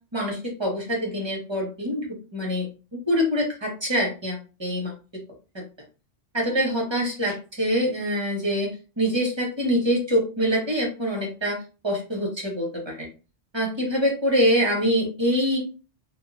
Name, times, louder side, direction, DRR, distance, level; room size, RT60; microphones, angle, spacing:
voice 1, 0.1-2.0 2.3-2.7 3.1-4.9 6.3-8.7 9.0-11.6 11.8-13.1 13.5-15.6, equal, 25° right, -1 dB, 0.8 m, -24 dB
2.8 x 2.3 x 2.5 m, 0.33 s
omnidirectional pair, 1.2 m